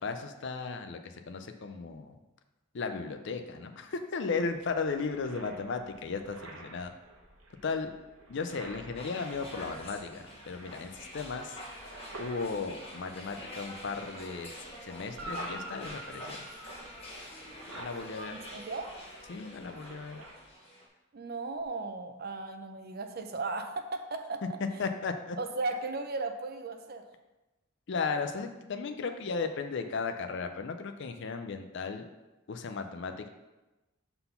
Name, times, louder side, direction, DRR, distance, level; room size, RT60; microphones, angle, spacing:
voice 1, 0.0-2.2 2.7-6.9 7.6-7.9 8.3-11.6 12.2-14.5 14.8-16.4 17.7-18.3 19.3-20.2 24.8-25.4 27.9-32.1 32.5-33.3, left 4 dB, 55° left, 6 dB, 0.5 m, -35 dB
sound 1, 4.4-20.5, right 2 dB, 70° right, 1.0 m, -51 dB
sound 2, 8.9-20.9, equal, 30° left, 1.1 m, -46 dB
Guitar, 15.2-17.7 21.5-21.6, equal, 90° right, 1.3 m, -44 dB
voice 2, 18.3-18.9 21.1-24.8 25.4-27.1, right 3 dB, 45° right, 6 dB, 0.6 m, -36 dB
5.8 x 4.0 x 5.6 m, 1.1 s
head